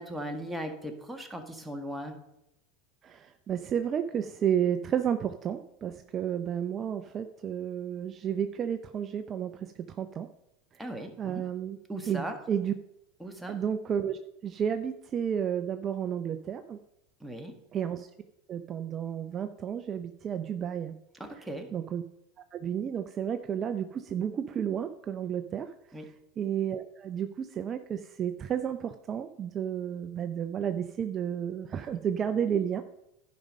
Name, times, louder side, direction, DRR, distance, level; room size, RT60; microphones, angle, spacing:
voice 1, 0.0-2.1 10.8-11.5 11.9-12.4 13.2-13.6 17.2-17.5 21.2-21.7 25.9-26.1, right 1 dB, 5° right, 3 dB, 1.6 m, -38 dB
voice 2, 3.0-10.3 11.2-11.8 12.1-12.2 12.5-12.7 13.5-16.8 17.7-18.1 18.5-20.9 21.3-21.4 21.7-22.0 22.5-25.7 26.4-32.8, right 8 dB, 35° right, 9 dB, 0.5 m, -32 dB
10.5 x 5.2 x 5.3 m, 0.83 s
hypercardioid pair, 95°, 0 cm